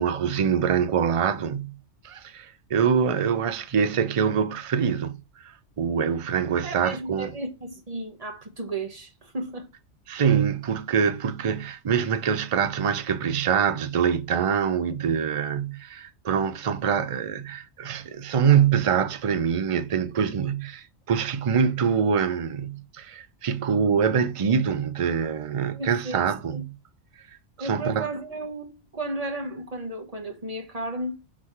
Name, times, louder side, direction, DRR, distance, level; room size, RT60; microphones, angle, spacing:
voice 1, 0.0-1.7 2.0-5.2 5.8-7.3 10.1-26.7 27.6-28.1, right 7 dB, 55° right, 0.3 m, -24 dB
voice 2, 6.6-9.7 25.7-26.3 26.5-26.6 27.6-31.2, right 2 dB, 35° right, 1.1 m, -34 dB
6.0 x 3.1 x 5.7 m
omnidirectional pair, 1.2 m